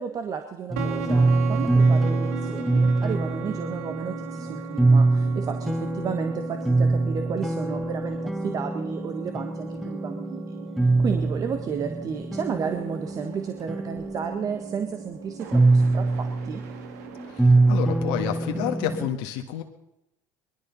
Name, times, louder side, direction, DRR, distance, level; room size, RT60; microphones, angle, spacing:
voice 1, 0.0-10.4 10.8-16.6, right 6 dB, 40° right, 6 dB, 1.5 m, -33 dB
sound 1, 0.7-19.1, right 2 dB, ahead, 0.9 m, -24 dB
sound 2, 0.8-19.1, right 9 dB, 80° right, 1.8 m, -40 dB
voice 2, 17.3-19.6, left 11 dB, 75° left, 4 dB, 1.5 m, -29 dB
20.5 x 12.5 x 5.6 m, 0.88 s
supercardioid pair, 85°, 9 cm